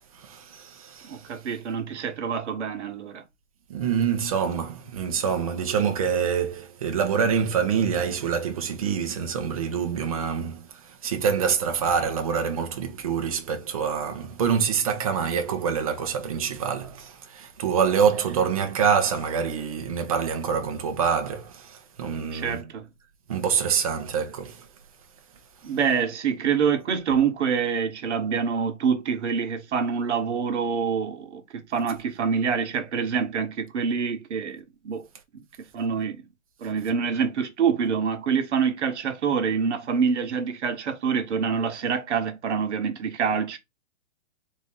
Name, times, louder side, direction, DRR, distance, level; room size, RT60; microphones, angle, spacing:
voice 1, 0.1-1.4 3.7-22.7 23.3-24.7 25.6-25.7, right 7 dB, 30° right, 0.7 m, -26 dB
voice 2, 1.0-3.2 22.3-22.8 25.6-35.1 35.3-35.4 35.7-36.2 36.6-43.6, right 6 dB, 65° right, 1.2 m, -26 dB
4.2 x 2.7 x 3.5 m
hypercardioid pair, 175°, 38 cm